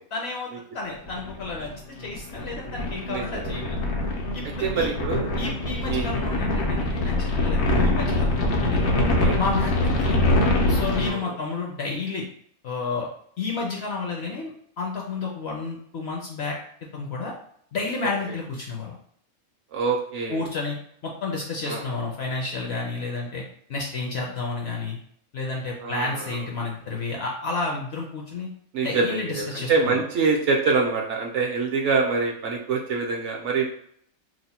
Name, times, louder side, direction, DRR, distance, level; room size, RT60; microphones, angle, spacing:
voice 1, 0.1-0.5 0.7-1.7 2.0-3.8 4.3-4.9 5.4-8.9 9.4-10.2 10.7-12.2 12.6-13.1 13.4-16.5 16.9-17.3 17.7-18.9 20.3-20.8 21.0-23.4 23.7-25.0 25.3-28.5 28.8-30.0, left 3 dB, 60° left, -1 dB, 0.7 m, -31 dB
sound 1, 1.1-11.1, left 2 dB, 90° left, 1.1 m, -24 dB
voice 2, 3.1-3.5 4.6-5.3 5.9-6.1 9.0-9.4 11.0-11.4 19.7-20.4 21.7-21.8 25.8-26.4 28.7-33.7, right 4 dB, 65° right, 0 dB, 0.8 m, -25 dB
2.9 x 2.1 x 4.1 m, 0.64 s
omnidirectional pair, 1.5 m